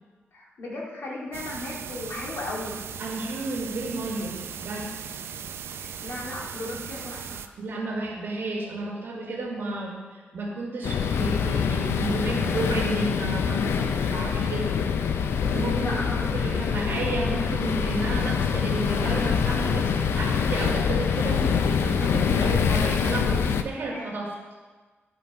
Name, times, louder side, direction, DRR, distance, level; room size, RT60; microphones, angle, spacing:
voice 1, 0.3-2.8 5.8-7.4 15.7-16.4 23.8-24.1, left 2 dB, 65° left, -3 dB, 2.1 m, -36 dB
sound 1, 1.3-7.5, right 7 dB, 85° right, 0.5 m, -38 dB
voice 2, 3.0-4.9 7.6-14.7 15.5-15.9 16.3-24.3, right 2 dB, 60° right, -2 dB, 1.9 m, -32 dB
sound 2, 10.8-23.6, left 7 dB, 85° left, 0.5 m, -25 dB
12.0 x 5.6 x 4.9 m, 1.3 s
wide cardioid pair, 155°, 4 cm